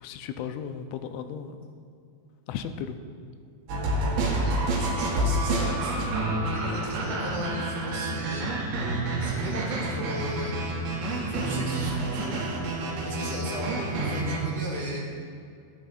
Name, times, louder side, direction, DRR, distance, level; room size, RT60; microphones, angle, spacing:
voice 1, 0.0-1.7 2.5-3.0, left 8 dB, 90° left, 8 dB, 3.0 m, -35 dB
sound 1, 3.7-14.4, right 2 dB, 65° right, 3.5 m, -28 dB
voice 2, 4.2-5.9 6.4-8.7 9.2-10.6 11.3-12.4 13.0-15.2, right 1 dB, 60° left, -7 dB, 1.0 m, -36 dB
14.0 x 12.5 x 2.5 m, 2.4 s
omnidirectional pair, 5.3 m